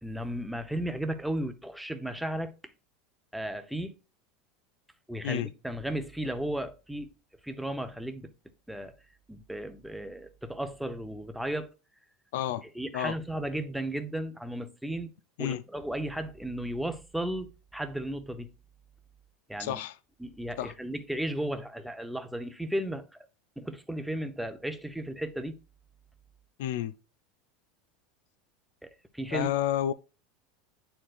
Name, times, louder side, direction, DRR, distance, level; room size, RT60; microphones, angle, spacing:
voice 1, 0.0-2.5 3.3-3.9 5.1-7.1 7.4-8.3 8.7-9.0 9.3-11.7 12.7-15.1 15.4-18.5 19.5-19.8 20.2-23.2 23.6-25.5 28.8-29.5, right 1 dB, ahead, 0.6 m, -35 dB
voice 2, 12.3-12.6 12.9-13.1 15.4-15.6 19.6-20.0 20.6-20.7 26.6-27.0 29.3-29.9, left 11 dB, 80° left, 0.4 m, -30 dB
8.9 x 4.4 x 2.4 m
supercardioid pair, 150°, 0 cm